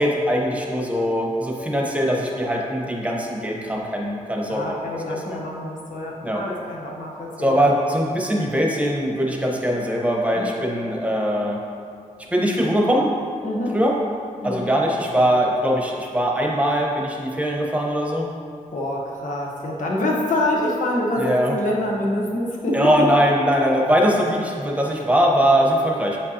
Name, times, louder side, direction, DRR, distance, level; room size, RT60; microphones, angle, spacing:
voice 1, 0.0-5.0 5.3-5.4 6.2-6.4 7.4-11.6 12.3-13.1 13.7-13.9 14.4-18.3 21.2-21.5 22.7-26.2, equal, 10° right, -1 dB, 1.0 m, -21 dB
voice 2, 4.5-7.6 10.3-10.5 13.4-13.8 14.4-14.7 18.7-23.1, left 1 dB, 70° left, -2 dB, 1.0 m, -26 dB
7.4 x 5.1 x 2.9 m, 2.4 s
cardioid pair, 85°, 14 cm